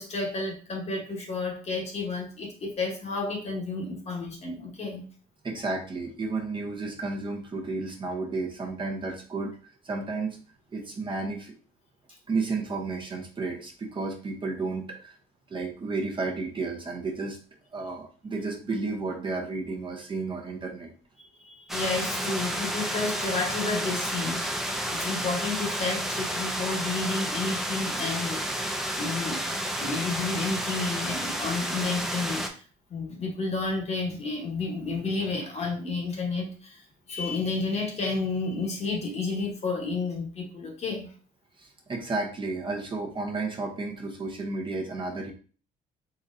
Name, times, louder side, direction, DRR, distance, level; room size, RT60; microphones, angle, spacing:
voice 1, 0.0-5.1 21.4-24.4 24.9-28.7 28.9-29.4 29.8-32.6 32.9-41.1, left 3 dB, 40° left, 2 dB, 1.1 m, -31 dB
voice 2, 5.4-9.5 9.8-10.4 10.7-11.5 12.3-15.1 15.5-17.4 17.7-20.9 41.6-45.3, right 3 dB, 30° right, 2 dB, 0.8 m, -32 dB
sound 1, 21.7-32.5, equal, ahead, 0.5 m, -31 dB
3.9 x 3.0 x 2.6 m, 0.39 s
cardioid pair, 110°, 17 cm